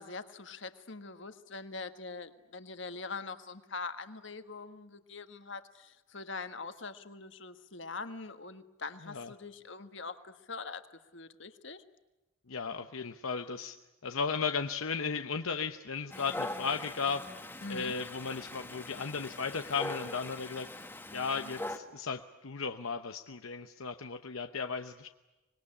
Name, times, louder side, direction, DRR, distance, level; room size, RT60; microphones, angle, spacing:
voice 1, 0.0-11.8 17.6-17.9, left 4 dB, 60° left, 9 dB, 1.5 m, -43 dB
voice 2, 12.5-13.8 14.0-20.9 21.1-25.1, left 5 dB, 75° left, 7 dB, 0.9 m, -35 dB
Dog, 16.1-21.8, left 1 dB, 10° left, 1.3 m, -42 dB
25.5 x 21.0 x 9.9 m, 1.1 s
head